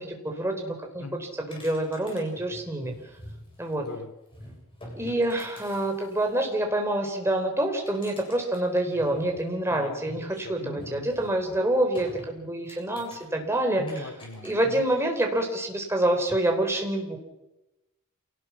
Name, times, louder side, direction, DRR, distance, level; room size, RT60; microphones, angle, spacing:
voice 1, 0.0-2.9 3.6-3.9 5.0-14.1 14.4-17.2, right 1 dB, 10° right, 2 dB, 4.0 m, -27 dB
sound 1, 1.5-3.9 4.3-6.5 7.6-9.8 10.7-12.3 12.7-13.3 13.8-14.8, equal, 25° left, 7.9 m, -47 dB
voice 2, 3.8-4.1 9.7-11.1 13.8-14.8, left 1 dB, 80° left, 5 dB, 2.7 m, -40 dB
28.0 x 18.5 x 5.9 m, 0.95 s
head